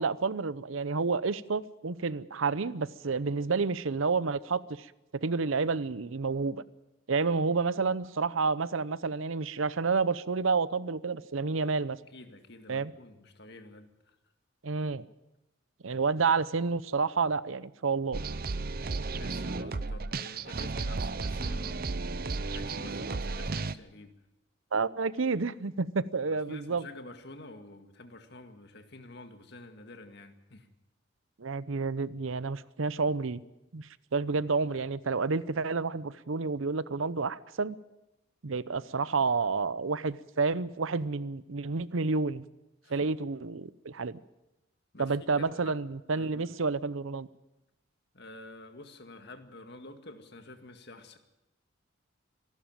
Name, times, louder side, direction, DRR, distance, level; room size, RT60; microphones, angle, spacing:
voice 1, 0.0-4.9 5.2-6.6 7.1-12.0 12.7-12.9 14.6-15.1 15.8-18.2 24.7-26.8 31.4-33.4 33.7-37.8 38.4-42.4 42.9-44.2 45.0-47.3, right 4 dB, 75° right, 17 dB, 0.7 m, -30 dB
voice 2, 12.1-14.2 19.1-21.9 22.5-24.1 26.3-30.7 42.8-43.1 44.9-45.8 46.1-46.5 48.1-51.2, left 2 dB, 55° left, 7 dB, 2.0 m, -49 dB
sound 1, 18.1-23.7, right 3 dB, 45° right, 0.7 m, -34 dB
26.0 x 12.5 x 9.0 m, 0.95 s
head